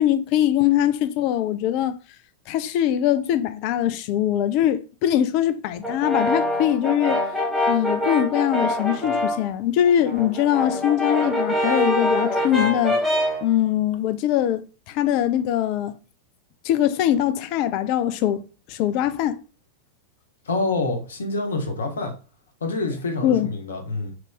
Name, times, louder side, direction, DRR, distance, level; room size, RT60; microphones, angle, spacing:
voice 1, 0.0-2.0 2.5-7.2 7.7-13.0 13.4-16.0 16.6-19.4 23.2-23.5, left 11 dB, 45° left, 0.4 m, -22 dB
Brass instrument, 5.8-9.5 9.9-13.5, left 1 dB, 5° right, 1.1 m, -24 dB
voice 2, 20.4-22.1 22.6-24.1, left 2 dB, 70° left, 0.8 m, -26 dB
3.0 x 2.5 x 3.6 m
figure-of-eight pair, 90°, 0 cm